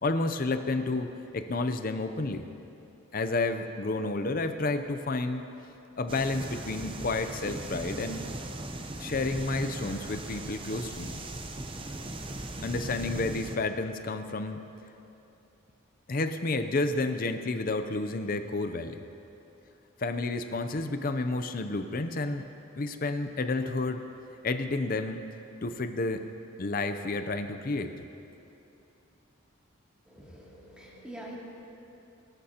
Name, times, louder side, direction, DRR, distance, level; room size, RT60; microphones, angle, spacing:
voice 1, 0.0-2.5 3.1-5.5 6.0-8.3 9.0-11.2 12.6-14.7 16.1-19.0 20.0-22.5 22.8-24.0 24.4-25.2 25.6-26.3 26.6-27.9, left 2 dB, 45° left, 8 dB, 0.6 m, -30 dB
sound 1, 6.1-13.6, right 1 dB, 25° right, 0.7 m, -38 dB
voice 2, 30.0-31.3, right 1 dB, 5° right, -6 dB, 2.6 m, -45 dB
23.5 x 12.5 x 2.9 m, 2.8 s
head